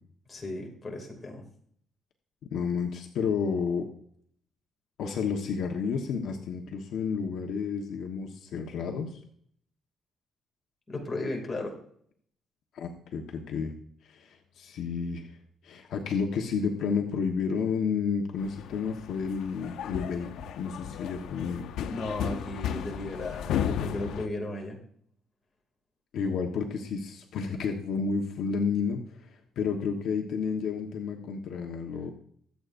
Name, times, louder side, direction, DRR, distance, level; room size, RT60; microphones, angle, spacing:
voice 1, 0.3-1.4 10.9-11.8 21.8-24.8, left 2 dB, 15° left, 0 dB, 2.5 m, -35 dB
voice 2, 2.5-3.9 5.0-9.2 12.7-13.7 14.0-15.3 15.6-20.3 20.6-21.6 26.1-32.1, left 5 dB, 60° left, 2 dB, 1.2 m, -31 dB
sound 1, 18.4-24.3, left 9 dB, 75° left, 0.7 m, -34 dB
23.0 x 8.2 x 2.6 m, 0.64 s
cardioid pair, 170°, 0 cm